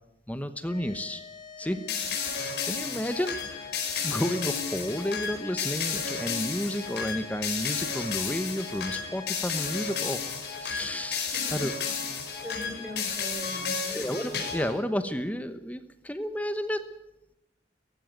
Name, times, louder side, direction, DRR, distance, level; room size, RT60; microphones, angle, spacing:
voice 1, 0.3-1.2 1.6-1.8 2.4-3.7 4.0-11.7 13.9-16.8, equal, 10° left, 10 dB, 1.0 m, -32 dB
sound 1, 0.6-15.0, left 7 dB, 25° left, 3.3 m, -49 dB
voice 2, 1.6-2.1 11.3-11.6 12.4-14.0, equal, 10° right, 2 dB, 5.9 m, -41 dB
sound 2, 1.9-14.8, left 6 dB, 65° left, 5.2 m, -32 dB
18.5 x 15.5 x 9.2 m, 0.91 s
head